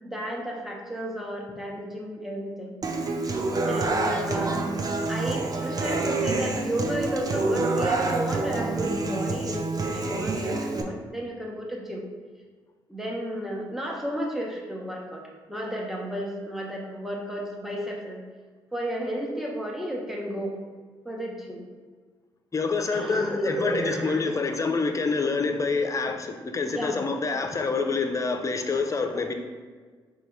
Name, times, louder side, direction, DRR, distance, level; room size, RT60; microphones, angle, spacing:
voice 1, 0.0-3.0 3.7-4.6 5.1-12.1 12.9-18.2 18.7-20.6 21.0-21.6 22.9-24.4 26.7-27.0 29.1-29.2, equal, 5° right, -1 dB, 0.9 m, -32 dB
Human voice / Acoustic guitar, 2.8-10.8, right 3 dB, 40° right, 0.6 m, -27 dB
voice 2, 22.5-29.3, left 4 dB, 30° left, 6 dB, 0.5 m, -27 dB
3.9 x 2.4 x 4.4 m, 1.5 s
supercardioid pair, 55°, 10 cm